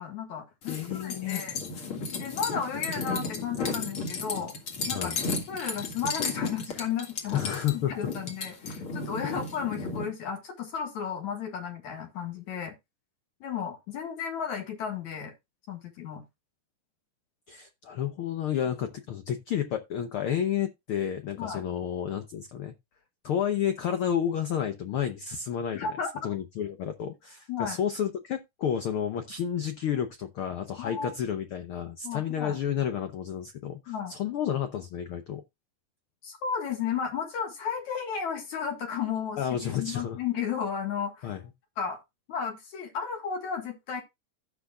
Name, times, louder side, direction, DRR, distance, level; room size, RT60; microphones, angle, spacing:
voice 1, 0.0-1.5 2.2-4.5 4.9-5.1 5.5-7.4 7.7-12.8 13.4-15.3 15.7-16.2 21.4-21.6 25.7-26.1 27.5-27.8 30.8-31.1 32.0-32.6 33.9-34.1 36.2-41.3 41.8-42.0 42.3-44.0, left 7 dB, 65° left, 3.0 m, -33 dB
sound 1, 0.6-10.1, left 4 dB, 45° left, 2.6 m, -34 dB
voice 2, 0.7-1.4 4.9-5.2 7.3-7.9 17.5-22.7 23.2-25.9 26.2-35.4 39.4-40.2 41.2-41.4, left 9 dB, 85° left, 1.2 m, -31 dB
15.5 x 6.3 x 2.4 m
omnidirectional pair, 3.7 m